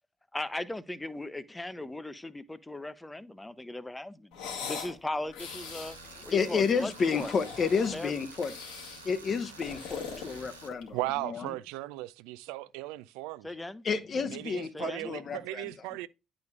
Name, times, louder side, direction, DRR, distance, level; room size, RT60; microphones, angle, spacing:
voice 1, 0.3-4.4 4.7-6.0 6.2-7.3 7.9-8.1 13.4-13.8 14.7-15.1, left 1 dB, 15° left, 0.8 m, -38 dB
sound 1, 4.3-5.0 5.3-6.0 6.8-8.0 8.4-9.0 9.5-11.0, left 6 dB, 70° left, 2.0 m, -41 dB
Tools, 5.4-10.7, right 3 dB, 90° right, 1.0 m, -49 dB
voice 2, 6.3-8.5 9.0-10.9 11.2-11.5 13.8-15.7, left 5 dB, 45° left, 0.9 m, -30 dB
voice 3, 10.9-13.5 14.3-16.1, right 18 dB, 70° right, 0.3 m, -37 dB
10.5 x 5.1 x 2.3 m
figure-of-eight pair, 45°, 0 cm